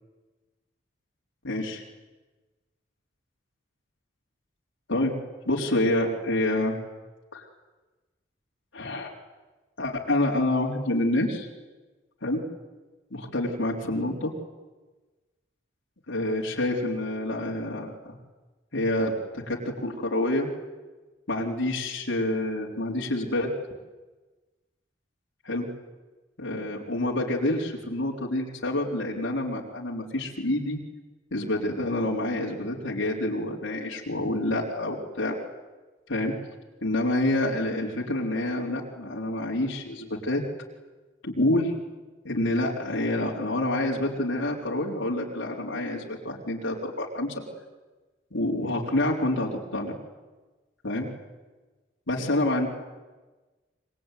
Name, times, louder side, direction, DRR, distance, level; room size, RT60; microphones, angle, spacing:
voice 1, 1.4-1.8 4.9-5.1 5.5-6.8 7.3-7.4 8.7-9.1 9.8-11.5 12.2-12.4 13.1-14.3 16.1-18.1 18.7-20.5 21.3-23.5 25.4-25.7 26.4-30.8 31.3-35.3 36.1-36.3 36.8-40.4 41.2-41.7 42.2-47.3 48.3-49.9 50.8-51.0 52.1-52.7, left 1 dB, 90° left, -3 dB, 4.3 m, -27 dB
26.0 x 24.0 x 9.4 m, 1.2 s
head